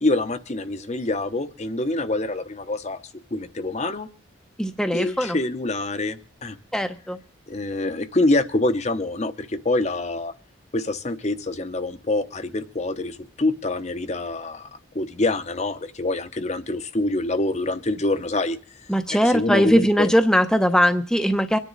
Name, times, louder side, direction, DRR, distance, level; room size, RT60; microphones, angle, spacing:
voice 1, 0.0-3.0 3.3-4.1 4.9-6.6 7.5-10.3 10.7-14.7 14.9-18.6 19.1-20.1, left 2 dB, 35° left, 10 dB, 0.9 m, -25 dB
voice 2, 4.6-5.4 6.7-7.2 18.9-21.6, equal, 5° left, 7 dB, 0.8 m, -20 dB
24.5 x 10.5 x 4.0 m, 0.36 s
head